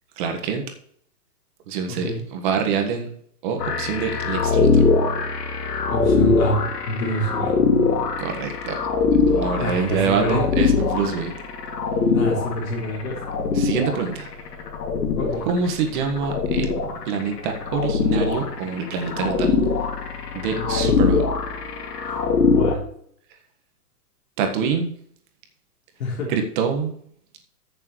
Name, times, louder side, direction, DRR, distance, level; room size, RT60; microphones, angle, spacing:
voice 1, 0.2-0.6 1.7-3.1 3.4-4.8 8.2-8.8 9.3-11.3 13.5-14.3 15.5-16.7 17.1-19.6 20.3-21.2 24.4-24.9 26.3-26.9, right 6 dB, 30° right, 4 dB, 1.6 m, -25 dB
voice 2, 1.9-2.2 5.9-7.6 9.6-10.5 12.1-13.2 15.2-15.5 20.5-21.0 22.1-22.9 26.0-26.3, equal, 55° left, -3 dB, 3.6 m, -27 dB
sound 1, 3.6-22.7, left 4 dB, 75° left, 2.6 m, -22 dB
14.5 x 7.0 x 3.2 m, 0.64 s
hypercardioid pair, 165°, 48 cm